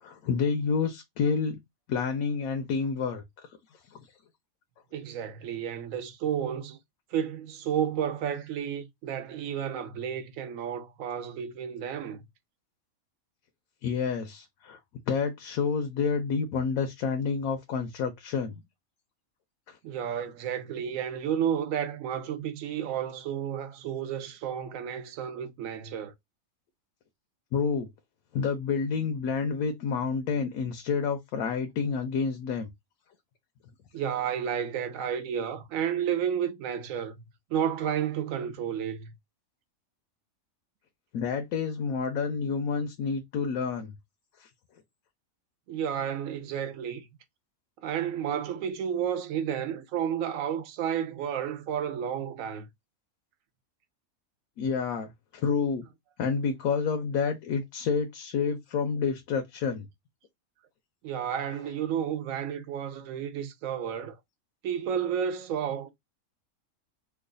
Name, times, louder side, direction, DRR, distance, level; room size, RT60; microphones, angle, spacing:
voice 1, 0.0-1.6 1.9-3.2 3.9-4.0 13.8-14.8 15.1-18.6 19.7-19.8 27.5-27.9 28.3-32.7 41.1-43.9 44.4-44.5 54.6-55.8 56.2-59.9, left 5 dB, 85° left, 1.1 m, -29 dB
voice 2, 4.9-6.8 7.1-12.2 19.8-26.1 33.9-37.2 37.5-39.1 45.7-47.1 47.8-52.7 61.0-64.2 64.6-65.9, right 9 dB, 75° right, 1.0 m, -31 dB
3.1 x 2.3 x 3.7 m
omnidirectional pair, 1.5 m